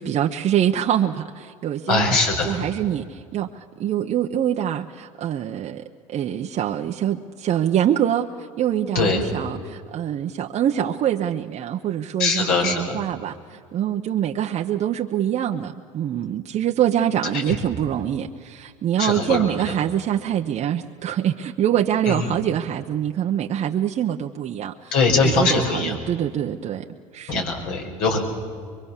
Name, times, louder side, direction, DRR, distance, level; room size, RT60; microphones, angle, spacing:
voice 1, 0.0-2.2 2.4-8.3 8.6-24.9 25.2-26.9 27.1-27.4, right 10 dB, 40° right, 3 dB, 0.9 m, -24 dB
voice 2, 1.9-2.6 8.9-9.2 12.2-13.0 17.5-17.6 19.0-19.5 22.1-22.4 24.9-26.0 27.3-28.2, left 4 dB, 65° left, 2 dB, 5.5 m, -21 dB
24.0 x 23.0 x 7.4 m, 2.2 s
supercardioid pair, 90°, 17 cm